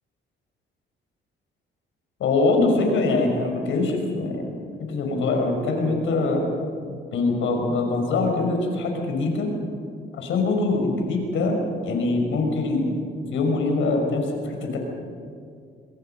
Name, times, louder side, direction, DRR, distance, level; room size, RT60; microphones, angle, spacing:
voice 1, 2.2-4.5 4.8-6.4 6.9-9.5 10.1-12.9 13.3-14.8, left 3 dB, 75° left, 2 dB, 5.5 m, -23 dB
25.0 x 22.0 x 5.7 m, 2.4 s
cardioid pair, 90°, 20 cm